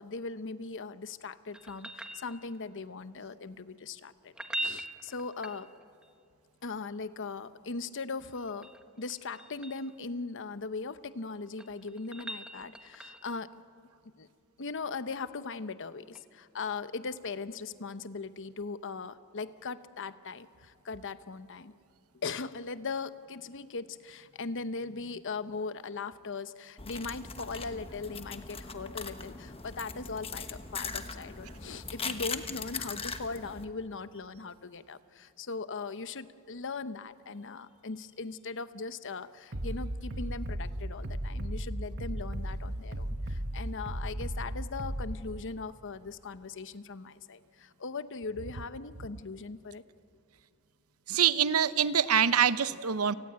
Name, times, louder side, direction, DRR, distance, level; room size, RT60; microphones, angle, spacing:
voice 1, 0.0-4.3 4.6-5.7 6.6-8.7 9.0-13.5 14.2-14.3 14.6-21.7 22.2-49.8, left 4 dB, 60° left, 13 dB, 0.9 m, -39 dB
sound 1, 1.5-2.8 4.2-6.1 8.2-9.9 11.3-13.4 16.1-16.2, right 1 dB, 5° right, 1.2 m, -41 dB
sound 2, 26.8-33.7, left 5 dB, 25° left, 1.2 m, -40 dB
Bass drum, 39.5-45.1, right 1 dB, 50° right, 1.5 m, -35 dB
voice 2, 51.1-53.1, right 8 dB, 75° right, 14 dB, 0.8 m, -25 dB
29.5 x 19.0 x 8.8 m, 2.4 s
head